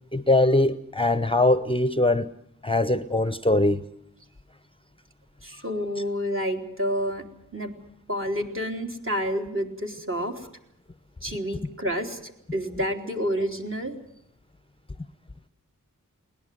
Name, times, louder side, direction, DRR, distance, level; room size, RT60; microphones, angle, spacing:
voice 1, 0.1-2.3 2.6-3.8, left 2 dB, 15° left, 12 dB, 0.8 m, -21 dB
voice 2, 5.4-7.2 7.5-7.7 8.1-10.3 11.2-13.9, equal, 40° right, 2 dB, 3.4 m, -29 dB
21.5 x 19.0 x 9.2 m, 0.75 s
wide cardioid pair, 70°, 33 cm